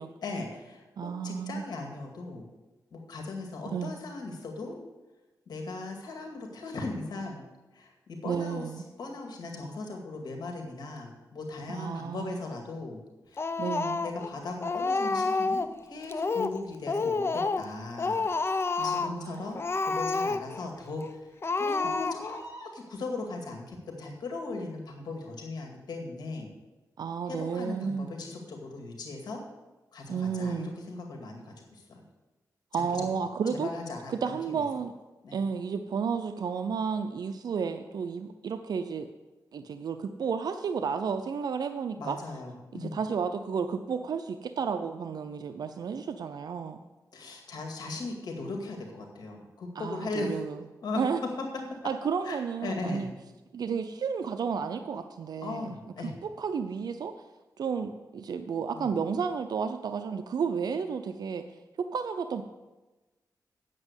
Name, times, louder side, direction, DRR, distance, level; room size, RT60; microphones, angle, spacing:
voice 1, 0.2-2.5 2.9-4.8 5.5-7.4 7.7-8.7 9.0-13.0 13.3-13.6 14.0-18.2 18.8-21.2 21.6-26.5 27.3-29.4 29.9-32.0 32.7-33.1 33.6-34.6 35.2-35.4 42.0-43.0 47.1-50.4 50.8-51.0 51.4-51.5 52.2-53.1 55.4-56.2 58.7-58.9, left 3 dB, 85° left, 2 dB, 2.1 m, -38 dB
voice 2, 1.0-1.6 3.7-3.9 8.2-8.8 11.7-12.4 13.6-14.0 18.8-19.5 21.7-21.9 27.0-28.1 30.1-30.7 32.7-33.7 34.1-34.9 35.3-39.1 39.5-42.2 42.7-46.8 49.8-50.6 51.0-51.2 51.8-53.1 53.5-55.7 56.2-57.1 57.6-61.4 61.8-62.4, right 6 dB, 75° right, 8 dB, 0.6 m, -32 dB
Speech, 13.4-14.3 14.6-15.7 16.1-16.6 16.9-17.7 18.0-19.2 19.6-20.6 21.0-21.1 21.4-22.4, left 3 dB, 35° left, 0.6 m, -29 dB
8.9 x 7.5 x 8.1 m, 1.1 s
cardioid pair, 75°, 7 cm